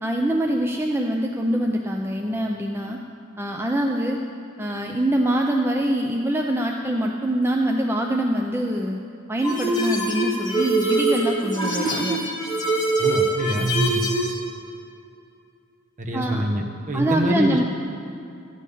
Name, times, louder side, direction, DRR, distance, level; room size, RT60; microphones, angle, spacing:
voice 1, 0.0-3.0 3.4-4.2 4.6-9.0 9.3-12.2 16.1-16.4 16.9-17.6, right 1 dB, 10° right, 1 dB, 0.5 m, -24 dB
sound 1, 9.4-14.3, right 2 dB, 20° left, 1.9 m, -23 dB
voice 2, 13.0-14.1 16.0-17.6, right 1 dB, 35° right, 2 dB, 1.0 m, -25 dB
13.5 x 5.5 x 8.4 m, 2.5 s
head